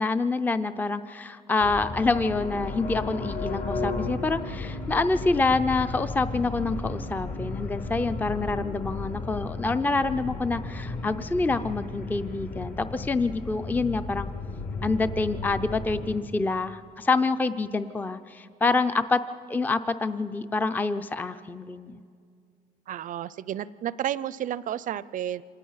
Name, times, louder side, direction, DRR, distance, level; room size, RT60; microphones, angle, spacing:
voice 1, 0.0-14.3 14.8-19.2 19.5-22.0, left 3 dB, 10° left, 11 dB, 0.5 m, -27 dB
sound 1, 1.6-16.2, left 3 dB, 55° left, 2.6 m, -34 dB
voice 2, 22.9-25.4, right 11 dB, 50° right, 18 dB, 0.5 m, -31 dB
25.0 x 19.0 x 5.7 m, 2.3 s
cardioid pair, 110°, 17 cm